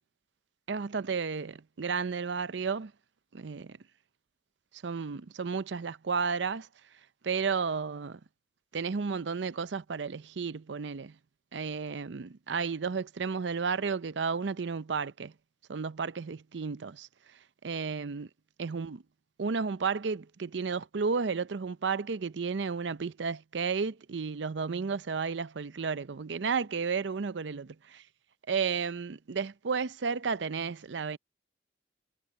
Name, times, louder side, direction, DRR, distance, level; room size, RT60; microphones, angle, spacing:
voice 1, 0.7-2.9 3.3-3.8 4.8-6.7 7.2-8.2 8.7-11.1 11.5-15.3 15.7-17.1 17.6-18.3 18.6-19.0 19.4-27.8 28.5-31.2, right 5 dB, 75° right, 0.6 m, -32 dB
head